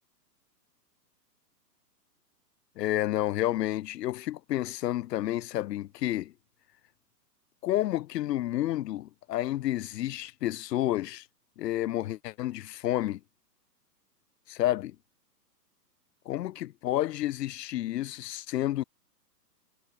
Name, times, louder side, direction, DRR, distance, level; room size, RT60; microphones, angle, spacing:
voice 1, 2.8-6.3 7.6-11.3 11.6-13.2 14.5-15.0 16.3-18.8, left 14 dB, 75° left, 0.6 m, -30 dB
hypercardioid pair, 165°, 50 cm